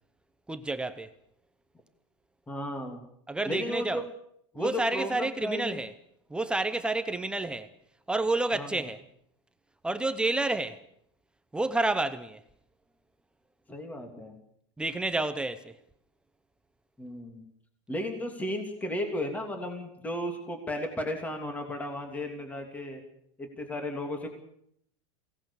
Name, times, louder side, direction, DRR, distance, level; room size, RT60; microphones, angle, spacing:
voice 1, 0.5-1.1 3.3-4.0 4.5-5.9 6.3-7.7 8.1-9.0 9.8-10.8 11.5-12.4 14.8-15.8, right 2 dB, 5° right, 0.9 m, -29 dB
voice 2, 2.5-3.0 3.5-4.0 4.5-5.8 8.5-8.8 13.7-14.3 17.0-17.4 17.9-23.0 23.4-24.3, left 1 dB, 10° left, 3.0 m, -34 dB
22.5 x 17.5 x 7.2 m
supercardioid pair, 145°, 15 cm